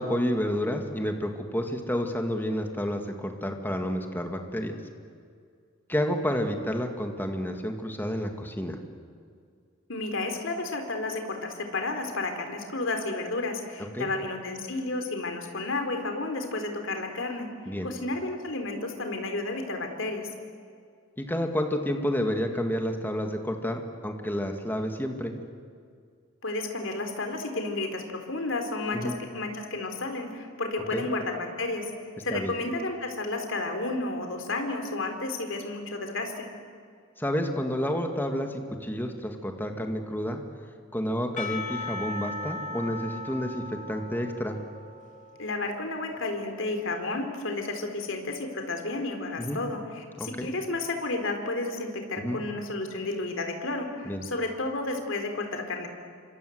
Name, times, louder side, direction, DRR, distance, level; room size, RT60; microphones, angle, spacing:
voice 1, 0.0-4.8 5.9-8.8 13.9-14.1 17.7-17.9 21.2-25.3 28.9-29.1 30.9-31.1 32.3-32.5 37.2-40.4 40.9-44.6 49.4-49.6 50.2-50.5 52.2-52.4 54.1-54.2, equal, 10° left, 4 dB, 2.0 m, -30 dB
voice 2, 9.9-17.5 17.8-20.3 26.4-31.9 32.2-36.5 45.4-55.9, left 2 dB, 65° left, 5 dB, 3.8 m, -32 dB
Percussion / Church bell, 41.4-46.6, left 3 dB, 40° left, 2.3 m, -38 dB
28.5 x 25.5 x 8.0 m, 2.2 s
head